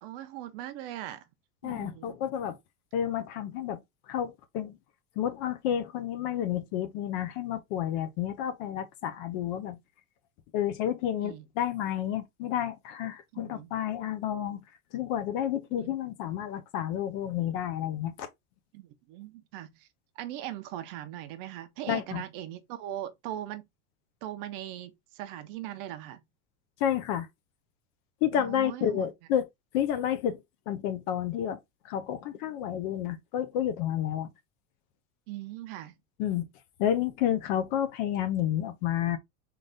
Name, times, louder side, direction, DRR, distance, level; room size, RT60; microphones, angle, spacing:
voice 1, 0.0-1.3 1.6-2.2 11.2-11.5 13.3-13.7 15.8-16.0 18.7-19.9 20.2-23.6 24.2-26.2 28.3-29.1 35.3-35.9, right 13 dB, 50° right, 0.6 m, -40 dB
voice 2, 1.6-2.6 2.9-3.8 4.1-4.7 5.2-9.8 10.5-14.6 14.9-18.3 21.9-22.2 26.8-27.3 28.2-29.4 29.7-31.6 31.8-34.3 36.2-36.4 36.8-39.2, left 10 dB, 40° left, 0.4 m, -30 dB
3.9 x 2.6 x 3.3 m
cardioid pair, 180°, 36 cm